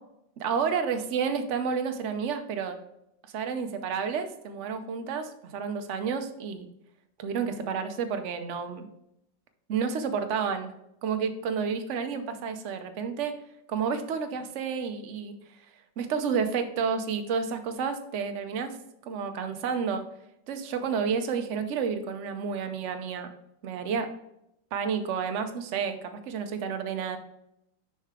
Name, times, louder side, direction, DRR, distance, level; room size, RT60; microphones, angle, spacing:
voice 1, 0.4-2.8 3.3-6.7 7.2-8.9 9.7-10.7 11.0-13.3 13.7-15.3 16.0-20.0 20.5-23.3 23.6-24.1 24.7-27.2, right 6 dB, 60° right, 7 dB, 0.8 m, -30 dB
6.6 x 5.6 x 3.6 m, 0.80 s
omnidirectional pair, 2.0 m